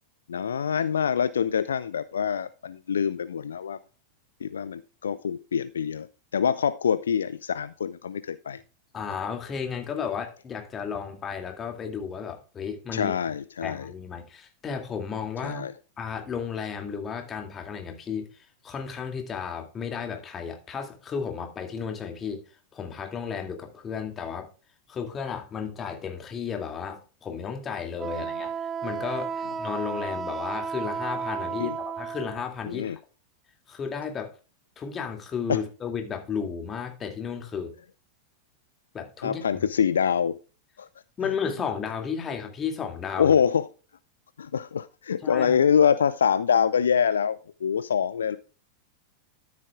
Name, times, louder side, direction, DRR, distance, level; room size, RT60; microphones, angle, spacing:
voice 1, 0.3-3.8 4.4-8.6 12.9-13.9 15.4-15.7 28.1-28.2 31.6-31.8 32.7-33.0 35.5-35.6 39.2-40.4 40.8-40.9 43.2-43.7 44.4-48.4, left 7 dB, 70° left, 0.4 m, -25 dB
voice 2, 8.9-13.2 13.6-15.7 16.0-22.4 22.7-24.5 24.9-28.5 28.8-33.0 33.7-34.3 34.8-37.7 38.9-39.7 41.2-43.3 45.2-45.6, left 6 dB, 25° left, 2.3 m, -33 dB
Wind instrument woodwind instrument, 28.0-32.4, right 6 dB, 20° right, 0.7 m, -33 dB
13.0 x 7.5 x 2.3 m
figure-of-eight pair, 90°, 0 cm